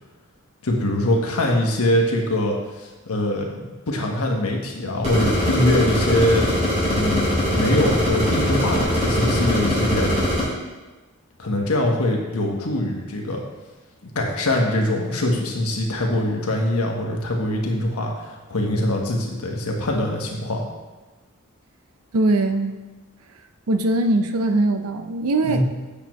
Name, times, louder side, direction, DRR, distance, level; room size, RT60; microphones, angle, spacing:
voice 1, 0.6-6.4 6.9-10.1 11.4-13.4 14.1-20.6 25.4-25.6, left 1 dB, 75° left, 0 dB, 1.2 m, -23 dB
sound 1, 5.0-10.4, equal, 30° right, 2.1 m, -22 dB
voice 2, 22.1-22.8 23.7-25.6, right 2 dB, 75° right, 7 dB, 0.6 m, -21 dB
8.4 x 5.9 x 3.1 m, 1.2 s
head